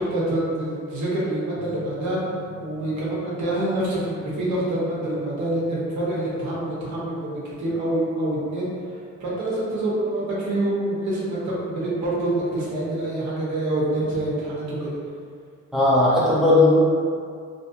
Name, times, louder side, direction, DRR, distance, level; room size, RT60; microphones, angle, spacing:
voice 1, 0.0-2.2 2.6-8.7 9.2-15.0, right 1 dB, 70° right, -7 dB, 1.0 m, -26 dB
sound 1, 1.6-5.9, equal, 40° right, 0.6 m, -44 dB
voice 2, 15.7-16.9, left 1 dB, ahead, -9 dB, 1.0 m, -17 dB
2.9 x 2.7 x 2.5 m, 2.2 s
cardioid pair, 90°, 30 cm